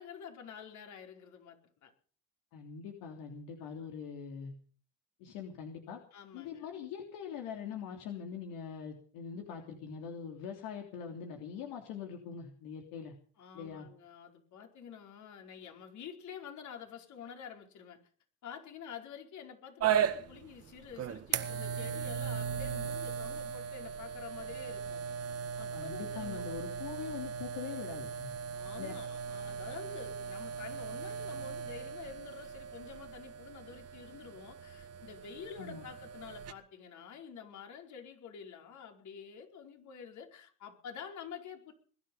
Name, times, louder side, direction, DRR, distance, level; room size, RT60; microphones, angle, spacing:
voice 1, 0.0-1.9 3.7-3.9 6.1-6.7 13.4-18.0 18.4-25.0 25.6-26.6 28.5-41.7, left 7 dB, 55° left, 4 dB, 4.8 m, -48 dB
voice 2, 2.5-4.5 5.2-6.0 6.3-13.1 13.5-13.9 25.7-28.3 28.7-28.9 35.6-35.8, left 7 dB, 70° left, 2 dB, 3.3 m, -43 dB
sound 1, 19.8-36.5, right 7 dB, 45° right, 1.8 m, -37 dB
21.0 x 12.0 x 5.5 m, 0.43 s
supercardioid pair, 75°, 34 cm